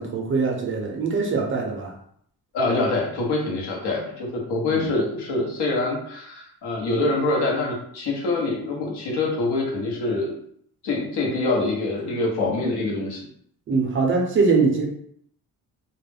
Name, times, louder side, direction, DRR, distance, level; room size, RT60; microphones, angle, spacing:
voice 1, 0.0-1.9 4.7-4.9 13.7-14.9, right 4 dB, 35° right, 0 dB, 0.4 m, -22 dB
voice 2, 2.5-10.3 10.8-13.3, left 2 dB, 80° left, -1 dB, 0.9 m, -25 dB
2.3 x 2.1 x 3.3 m, 0.66 s
cardioid pair, 175°, 38 cm